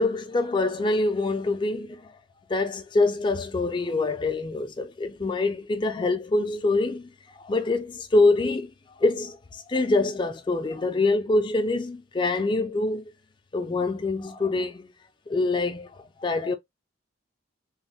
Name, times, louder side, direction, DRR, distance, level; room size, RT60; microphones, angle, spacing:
voice 1, 0.0-2.1 2.5-7.1 7.4-8.7 9.0-13.1 13.5-14.9 15.3-16.5, left 2 dB, 25° left, 0.3 m, -25 dB
3.0 x 2.1 x 2.6 m
head